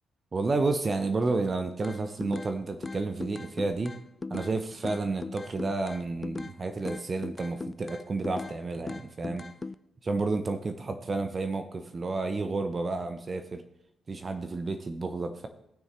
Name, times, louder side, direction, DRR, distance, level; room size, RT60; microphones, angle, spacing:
voice 1, 0.3-3.9 4.3-9.4 10.0-13.6 14.1-15.5, right 3 dB, 35° right, 7 dB, 0.8 m, -31 dB
sound 1, 1.8-2.5 2.8-4.5 4.8-6.6 6.9-8.6 8.9-9.8, left 3 dB, 30° left, 0.3 m, -38 dB
17.0 x 6.5 x 3.2 m, 0.82 s
hypercardioid pair, 40°, 0 cm